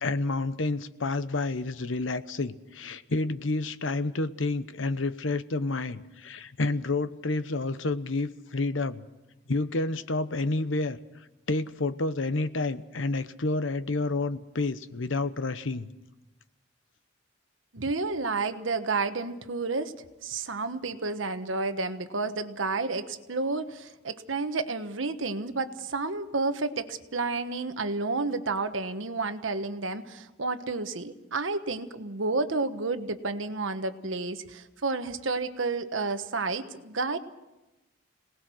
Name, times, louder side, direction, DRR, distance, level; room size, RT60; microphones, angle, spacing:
voice 1, 0.0-9.0 9.5-11.0 11.5-15.9, left 2 dB, 80° left, 13 dB, 1.0 m, -29 dB
voice 2, 17.7-19.9 20.2-37.2, right 3 dB, 90° right, 9 dB, 1.3 m, -31 dB
26.5 x 19.0 x 6.3 m, 1.0 s
head